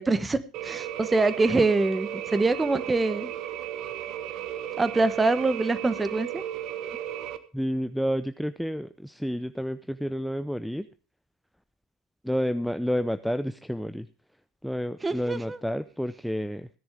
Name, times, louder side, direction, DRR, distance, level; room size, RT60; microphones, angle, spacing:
voice 1, 0.0-3.3 4.8-6.4 15.0-15.6, right 3 dB, 15° right, 14 dB, 1.1 m, -25 dB
sound 1, 0.5-7.4, right 11 dB, 55° right, 1.1 m, -35 dB
voice 2, 7.5-10.9 12.2-14.1 14.6-16.7, equal, ahead, 11 dB, 0.6 m, -30 dB
16.0 x 10.5 x 3.5 m, 0.35 s
hypercardioid pair, 70°, 0 cm